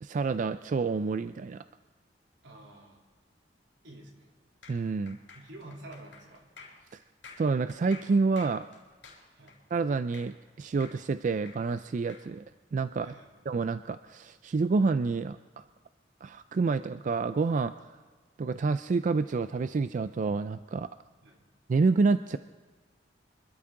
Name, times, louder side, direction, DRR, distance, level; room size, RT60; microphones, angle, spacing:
voice 1, 0.0-1.6 4.7-5.2 7.4-8.7 9.7-12.4 12.7-13.1 13.5-15.6 16.2-17.7 18.4-20.9 21.7-22.4, right 4 dB, 45° right, 12 dB, 0.3 m, -28 dB
voice 2, 2.4-3.0 3.8-4.4 5.3-6.5 9.3-9.6 13.0-13.4 21.2-21.5, right 1 dB, 80° right, 0 dB, 3.1 m, -49 dB
sound 1, 4.6-10.5 10.8-12.3, left 4 dB, 90° left, 5.2 m, -51 dB
25.5 x 12.5 x 3.7 m, 1.5 s
head